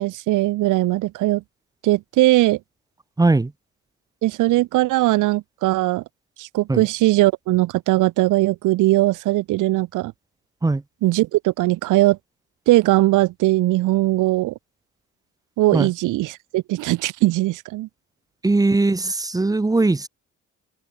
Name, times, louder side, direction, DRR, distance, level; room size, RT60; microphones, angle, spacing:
voice 1, 0.0-1.4 1.8-2.6 4.2-6.0 6.4-10.1 11.0-12.2 12.7-14.5 15.6-17.9, right 18 dB, 90° right, 1.0 m, -19 dB
voice 2, 3.2-3.5 6.7-6.8 10.6-10.8 15.7-15.9 18.4-20.1, right 3 dB, 10° right, 0.7 m, -19 dB
open air
cardioid pair, 90°, 30 cm